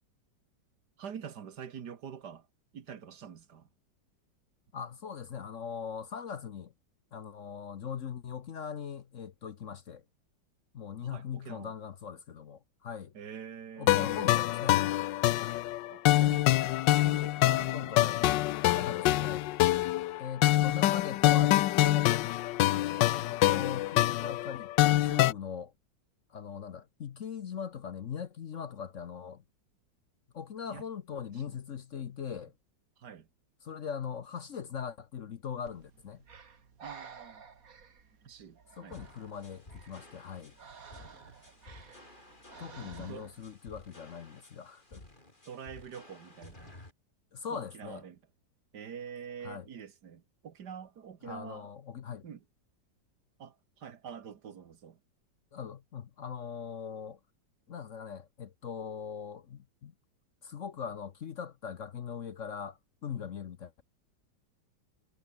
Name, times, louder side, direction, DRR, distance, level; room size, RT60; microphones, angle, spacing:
voice 1, 1.0-2.5 2.7-3.7 11.0-11.7 13.1-14.4 15.9-16.7 17.1-18.2 30.6-30.8 31.5-31.6 33.0-33.3 36.8-37.4 38.2-39.0 43.0-43.3 45.5-46.8 47.5-48.2 48.7-51.7 52.2-52.4 53.4-55.0, right 7 dB, 65° right, 2.0 m, -46 dB
voice 2, 4.7-6.7 7.1-10.0 10.7-13.1 13.8-14.8 17.7-18.2 18.7-19.5 20.2-22.2 22.7-25.7 26.3-29.4 30.3-32.5 33.6-36.2 38.8-40.5 42.6-45.0 47.3-48.0 49.4-49.6 51.2-52.3 55.5-57.2 57.7-59.9 60.4-63.8, left 7 dB, 50° left, 1.1 m, -40 dB
sound 1, 13.9-25.3, left 15 dB, 85° left, 1.3 m, -26 dB
Breathing, 35.6-43.5, right 6 dB, 50° right, 2.2 m, -53 dB
sound 2, 38.9-46.9, left 2 dB, 25° left, 3.8 m, -54 dB
omnidirectional pair, 1.9 m